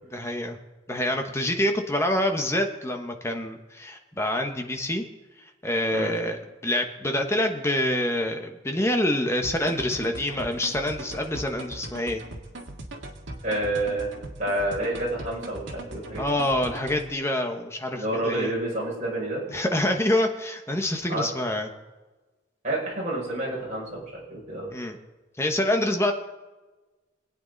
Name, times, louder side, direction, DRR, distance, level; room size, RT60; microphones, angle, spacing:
voice 1, 0.1-0.6 0.9-5.0 5.4-12.2 16.2-18.5 19.5-21.7 24.7-25.0 25.4-26.1, left 1 dB, 15° left, 4 dB, 1.1 m, -26 dB
sound 1, 9.4-17.1, right 1 dB, 75° right, 1.9 m, -40 dB
voice 2, 13.4-14.1 14.4-16.3 17.9-19.4 21.1-21.3 22.6-24.7, right 1 dB, 40° right, -5 dB, 6.0 m, -29 dB
26.0 x 8.9 x 4.0 m, 1.2 s
head